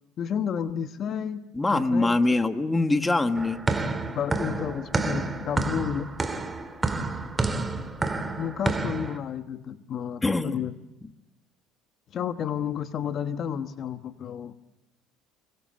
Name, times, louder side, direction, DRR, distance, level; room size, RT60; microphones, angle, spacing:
voice 1, 0.2-1.4 1.7-2.4 4.1-6.1 8.4-10.7 12.1-14.5, left 8 dB, 40° left, 9 dB, 1.1 m, -31 dB
voice 2, 1.5-3.6 10.2-10.6, left 2 dB, 10° left, 8 dB, 1.4 m, -23 dB
sound 1, 3.3-9.2, right 3 dB, 15° right, 2.0 m, -29 dB
26.5 x 24.0 x 7.6 m, 0.96 s
cardioid pair, 140°, 0 cm